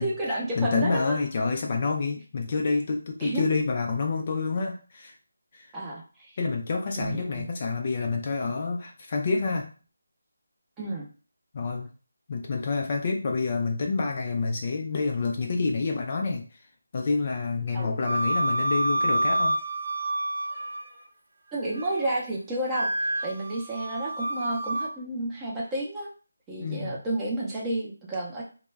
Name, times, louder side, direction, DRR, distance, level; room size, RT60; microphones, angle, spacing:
voice 1, 0.0-1.2 3.2-3.5 5.7-6.3 7.0-7.5 10.8-11.1 17.7-17.9 21.5-26.1 26.5-28.4, right 1 dB, 10° right, -4 dB, 0.6 m, -31 dB
voice 2, 0.6-5.2 5.5-5.7 6.4-9.7 11.5-11.9 12.3-16.5 16.9-19.6 26.6-27.0, left 4 dB, 35° left, 2 dB, 0.3 m, -28 dB
Wind instrument woodwind instrument, 18.0-21.0 21.4-22.2 22.7-24.9, right 1 dB, 70° right, 0.6 m, -28 dB
2.2 x 2.0 x 3.3 m, 0.36 s
figure-of-eight pair, 165°, 0 cm